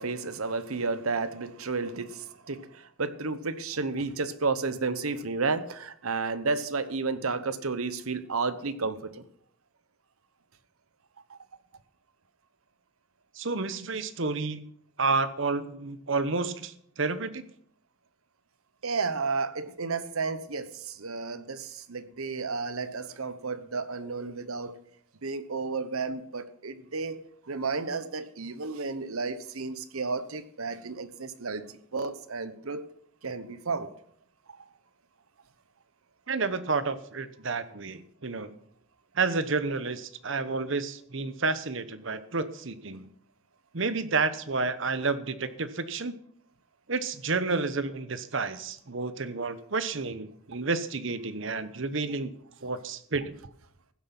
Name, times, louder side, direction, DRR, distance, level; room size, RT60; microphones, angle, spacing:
voice 1, 0.0-9.2 11.3-11.4 18.8-24.7 25.2-27.2 27.5-32.9 33.2-33.9, right 4 dB, 85° right, 1.0 m, -32 dB
voice 2, 13.4-14.6 15.0-17.5 36.3-38.5 39.1-43.1 43.7-46.1 46.9-52.3 52.6-53.4, right 4 dB, 60° right, 1.0 m, -30 dB
15.5 x 7.9 x 6.0 m
head